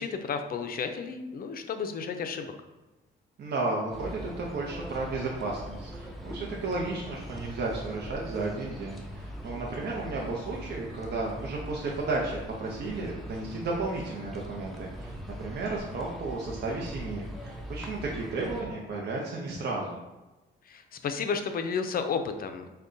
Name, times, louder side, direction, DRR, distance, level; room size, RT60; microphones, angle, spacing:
voice 1, 0.0-2.5 20.7-22.7, left 5 dB, 50° left, 7 dB, 0.4 m, -32 dB
voice 2, 3.4-20.0, right 3 dB, 55° right, -2 dB, 0.6 m, -33 dB
sound 1, 3.9-18.6, equal, ahead, 0.6 m, -41 dB
6.4 x 2.2 x 2.6 m, 1.1 s
cardioid pair, 90°, 20 cm